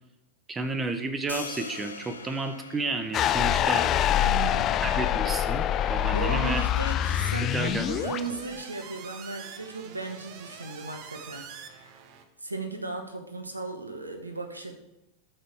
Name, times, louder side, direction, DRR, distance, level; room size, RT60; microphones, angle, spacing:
voice 1, 0.5-3.9 4.8-6.7 7.5-8.0, right 3 dB, 15° right, 8 dB, 1.1 m, -32 dB
sound 1, 1.3-7.4, left 4 dB, 75° left, 1.1 m, -45 dB
sound 2, 3.1-8.2, left 11 dB, 30° left, 0.4 m, -25 dB
sound 3, 3.2-12.2, right 7 dB, 40° right, 1.0 m, -48 dB
voice 2, 4.2-4.8 6.1-12.0 12.4-14.7, right 3 dB, 80° right, 5 dB, 1.3 m, -36 dB
12.0 x 6.9 x 4.7 m, 0.92 s
figure-of-eight pair, 90°, 0 cm